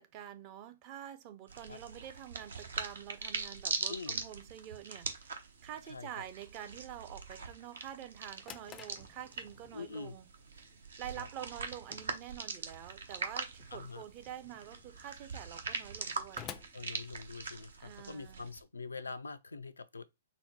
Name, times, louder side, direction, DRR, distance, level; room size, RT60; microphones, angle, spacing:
voice 1, 0.0-10.3 11.0-16.5 17.8-18.5, right 10 dB, 35° right, 0.6 m, -47 dB
sound 1, 1.5-18.6, right 4 dB, 75° right, 0.9 m, -42 dB
voice 2, 3.9-4.2 5.9-6.1 9.7-10.2 11.2-11.3 13.7-14.0 16.7-20.0, left 4 dB, 90° left, 0.4 m, -44 dB
Drawer open or close, 8.1-17.8, left 9 dB, 25° left, 0.4 m, -54 dB
4.1 x 2.1 x 4.2 m
hypercardioid pair, 125°, 0 cm